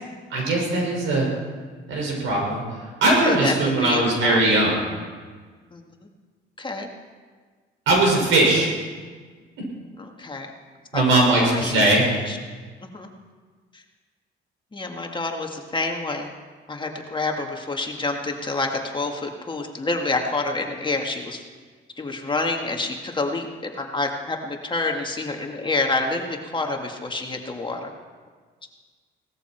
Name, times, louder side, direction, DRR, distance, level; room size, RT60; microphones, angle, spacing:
voice 1, 0.3-1.2 1.9-2.6 3.0-4.8 7.9-8.7 10.9-12.0, right 2 dB, 85° right, -2 dB, 6.0 m, -19 dB
voice 2, 3.2-4.4 5.7-5.8 6.6-6.9 8.5-8.7 10.0-10.5 10.9-12.4 12.9-13.1 13.7-13.8 14.7-16.3 16.7-21.4 22.0-27.9, left 3 dB, 25° left, 2 dB, 1.9 m, -28 dB
18.5 x 14.0 x 4.5 m, 1.5 s
cardioid pair, 90°, 20 cm